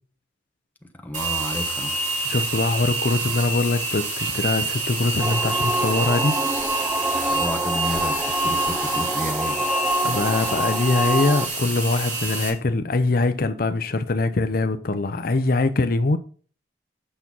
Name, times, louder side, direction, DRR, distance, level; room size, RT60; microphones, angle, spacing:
voice 1, 1.0-1.9 7.3-9.7, left 1 dB, 10° left, 1.1 m, -31 dB
sound 1, 1.1-12.5, right 3 dB, 45° right, 4.2 m, -28 dB
voice 2, 2.2-6.4 10.0-16.2, left 3 dB, 50° left, 0.6 m, -23 dB
sound 2, 5.2-11.5, right 1 dB, 10° right, 0.5 m, -26 dB
8.7 x 5.9 x 5.4 m
head